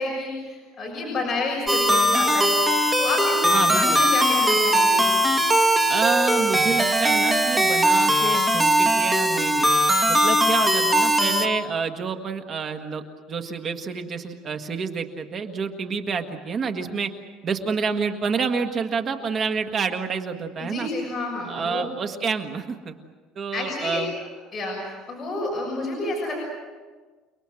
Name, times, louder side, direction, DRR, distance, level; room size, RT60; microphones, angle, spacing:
voice 1, 0.0-2.6 3.0-5.1 20.6-21.9 23.5-24.0 24.5-26.3, left 2 dB, 20° left, -2 dB, 6.7 m, -29 dB
sound 1, 1.7-11.5, equal, 5° right, 1.7 m, -20 dB
voice 2, 3.5-4.0 5.9-9.7 10.1-13.0 13.3-17.1 17.4-20.9 21.5-23.0 23.3-24.1, right 5 dB, 30° right, 5 dB, 1.7 m, -28 dB
29.5 x 21.0 x 7.8 m, 1.4 s
cardioid pair, 160°, 0 cm